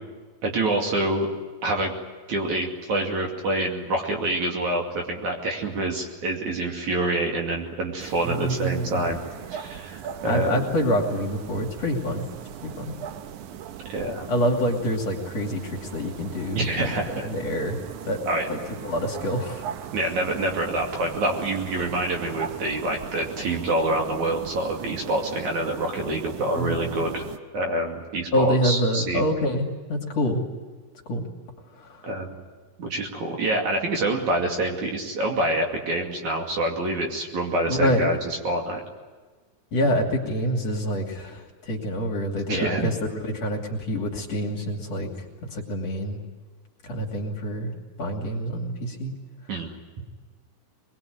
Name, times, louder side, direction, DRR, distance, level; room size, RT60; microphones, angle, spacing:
voice 1, 0.4-1.3 1.6-1.9 2.3-9.2 9.5-10.7 13.9-14.3 16.6-17.3 18.3-18.5 19.9-27.2 27.5-29.2 32.0-32.5 32.8-38.2 38.4-38.8 42.5-42.9 49.5-49.7, right 2 dB, 55° right, 1 dB, 3.7 m, -26 dB
sound 1, 8.0-27.4, right 9 dB, 70° right, 2.0 m, -39 dB
voice 2, 8.2-9.1 10.2-12.2 12.6-12.9 14.3-18.2 18.5-19.7 26.6-26.9 28.3-30.4 31.1-31.2 31.8-32.1 37.7-38.2 39.7-46.2 46.8-49.1, equal, 45° left, 0 dB, 3.6 m, -26 dB
24.5 x 21.5 x 9.4 m, 1.4 s
omnidirectional pair, 4.4 m